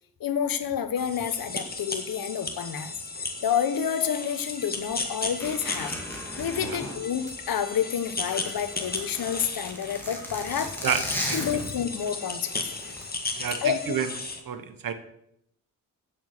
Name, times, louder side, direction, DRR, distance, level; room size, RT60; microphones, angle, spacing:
voice 1, 0.2-2.9 3.4-10.7 11.3-12.9 13.6-14.0, left 8 dB, 85° left, 11 dB, 1.2 m, -29 dB
sound 1, 1.0-14.4, left 3 dB, 25° left, 1.9 m, -36 dB
sound 2, 4.0-7.4 7.8-10.4, right 3 dB, 30° right, 2.1 m, -51 dB
Zipper (clothing), 5.4-7.8 8.1-12.1 12.7-13.0, left 1 dB, 5° left, 3.6 m, -36 dB
voice 2, 10.8-11.6 13.3-14.1 14.4-14.9, right 7 dB, 75° right, 10 dB, 1.2 m, -30 dB
15.5 x 7.2 x 6.7 m, 0.78 s
wide cardioid pair, 115°, 34 cm